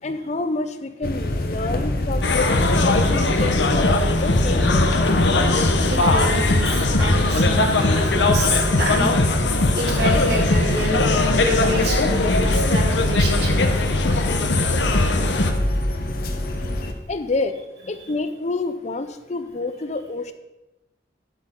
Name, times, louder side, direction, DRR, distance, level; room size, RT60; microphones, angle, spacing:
voice 1, 0.0-2.5 2.8-5.2 14.1-14.3 14.6-14.7 17.1-17.6 17.8-20.3, left 3 dB, 40° left, 10 dB, 0.5 m, -28 dB
sound 1, 1.0-16.9, left 1 dB, 55° left, 1.0 m, -25 dB
sound 2, 2.2-15.5, left 2 dB, 85° left, 0.9 m, -20 dB
voice 2, 5.9-9.1 9.7-11.1 11.4-13.6 18.0-18.1, right 1 dB, 65° right, -3 dB, 3.0 m, -27 dB
10.0 x 8.2 x 3.8 m, 0.99 s
head